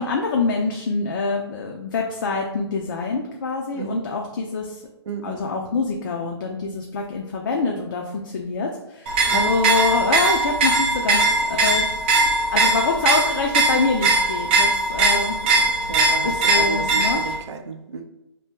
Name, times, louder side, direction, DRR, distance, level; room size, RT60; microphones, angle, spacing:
voice 1, 0.0-4.8 5.2-11.8 12.5-15.7 16.2-17.2, left 4 dB, 45° left, 1 dB, 0.4 m, -25 dB
voice 2, 5.1-5.4 9.3-9.5 15.8-18.0, right 6 dB, 85° right, 6 dB, 0.4 m, -32 dB
sound 1, 9.1-17.4, right 2 dB, 25° right, 0.4 m, -20 dB
2.7 x 2.1 x 3.5 m, 0.91 s
hypercardioid pair, 165°, 14 cm